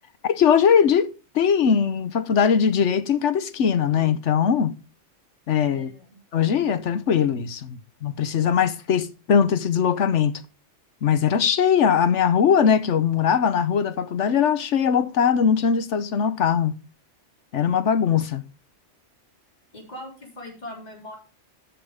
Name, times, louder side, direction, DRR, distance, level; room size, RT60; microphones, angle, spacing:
voice 1, 0.2-1.1 1.3-4.8 5.5-5.9 6.3-10.4 11.0-16.7 17.5-18.4, left 7 dB, 75° left, 1.2 m, -20 dB
voice 2, 5.7-6.1 19.7-21.2, left 1 dB, 35° left, 3.7 m, -40 dB
12.5 x 7.3 x 3.6 m
omnidirectional pair, 1.2 m